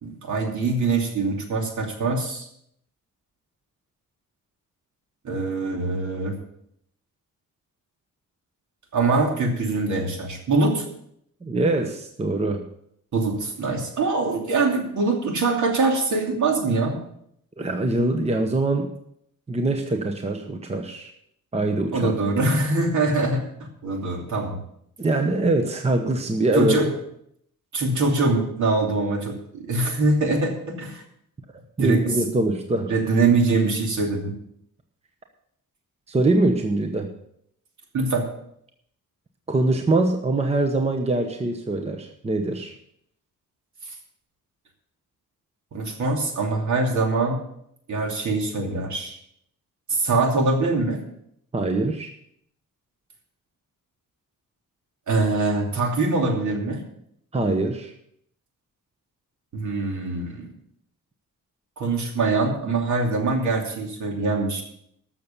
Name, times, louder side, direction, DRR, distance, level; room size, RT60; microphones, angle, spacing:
voice 1, 0.0-2.5 5.2-6.4 8.9-10.8 13.1-17.0 21.9-23.4 23.8-24.6 26.5-26.9 27.7-31.0 31.8-32.0 32.9-34.3 37.9-38.3 45.7-47.4 47.9-49.2 49.9-51.0 55.1-56.8 59.5-60.5 61.8-64.6, right 3 dB, 60° right, 2 dB, 2.8 m, -23 dB
voice 2, 11.4-12.6 17.6-18.9 19.5-21.1 21.5-22.1 25.0-26.8 31.8-32.9 36.1-37.1 39.5-42.7 51.5-52.1 57.3-57.9, right 2 dB, 20° right, 4 dB, 0.9 m, -23 dB
13.0 x 6.8 x 7.1 m, 0.73 s
wide cardioid pair, 165°, 33 cm